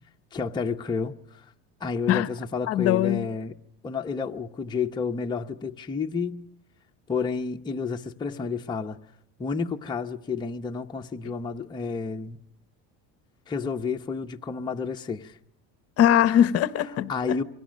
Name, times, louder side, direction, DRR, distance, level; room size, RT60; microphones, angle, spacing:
voice 1, 0.3-1.4 1.8-3.5 3.8-6.5 7.1-9.0 9.4-12.4 13.5-15.3 17.1-17.4, left 5 dB, 10° left, 0.9 m, -30 dB
voice 2, 2.7-3.3 16.0-17.1, left 11 dB, 45° left, 0.9 m, -21 dB
28.0 x 24.0 x 6.4 m
cardioid pair, 150°, 36 cm